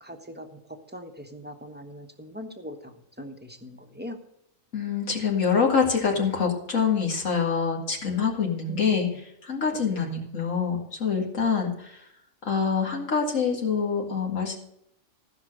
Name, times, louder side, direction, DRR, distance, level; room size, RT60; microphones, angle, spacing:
voice 1, 0.0-0.6 0.9-4.2 8.7-8.9 9.9-10.2, left 1 dB, 10° right, 5 dB, 1.0 m, -41 dB
voice 2, 4.7-9.1 9.4-12.0 12.4-14.6, left 6 dB, 75° left, 0 dB, 2.3 m, -25 dB
15.0 x 5.9 x 6.5 m, 0.77 s
omnidirectional pair, 1.4 m